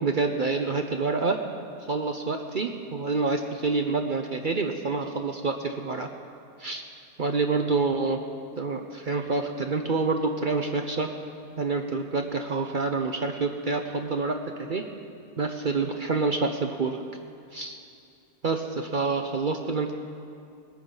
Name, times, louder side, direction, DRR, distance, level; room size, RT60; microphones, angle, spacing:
voice 1, 0.0-1.4 1.9-6.1 6.6-6.8 7.2-8.2 8.6-11.1 11.6-14.8 15.4-17.0 17.5-17.8 18.4-19.9, right 4 dB, 55° right, 4 dB, 0.5 m, -27 dB
19.5 x 9.4 x 5.4 m, 2.4 s
omnidirectional pair, 1.7 m